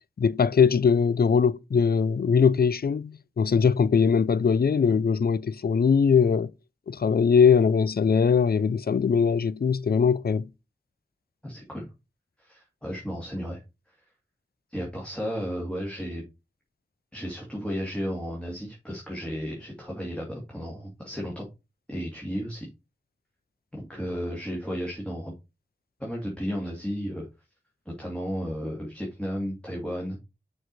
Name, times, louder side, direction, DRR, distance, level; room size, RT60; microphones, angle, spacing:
voice 1, 0.2-6.5 6.9-10.5, left 6 dB, 65° left, 0.4 m, -21 dB
voice 2, 11.4-11.8 12.4-13.6 14.7-16.2 17.1-21.5 21.9-22.7 23.7-25.3 26.0-27.3 27.9-30.2, equal, 5° left, 2.2 m, -33 dB
6.3 x 4.7 x 4.1 m
wide cardioid pair, 50°, 18 cm